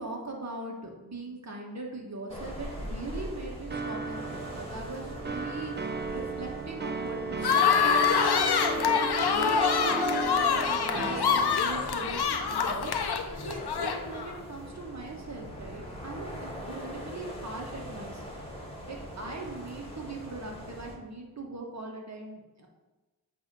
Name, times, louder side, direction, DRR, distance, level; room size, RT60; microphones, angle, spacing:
voice 1, 0.0-5.7 6.1-7.8 8.7-18.4 18.9-22.7, right 2 dB, 45° right, 0 dB, 1.3 m, -40 dB
sound 1, 2.3-21.0, equal, 15° left, 1.6 m, -42 dB
sound 2, 3.7-12.0, right 4 dB, 30° right, 0.5 m, -35 dB
sound 3, 7.4-14.3, left 6 dB, 90° left, 0.6 m, -26 dB
7.7 x 2.8 x 5.4 m, 1.2 s
wide cardioid pair, 50°, 38 cm